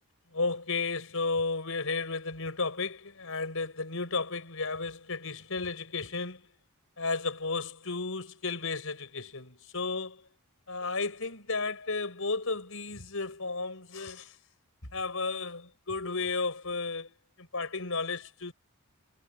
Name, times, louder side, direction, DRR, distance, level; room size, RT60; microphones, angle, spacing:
voice 1, 0.3-6.4 7.0-10.2 10.7-14.4 14.9-17.1 17.4-18.5, left 3 dB, 65° left, 7.3 m, -33 dB
head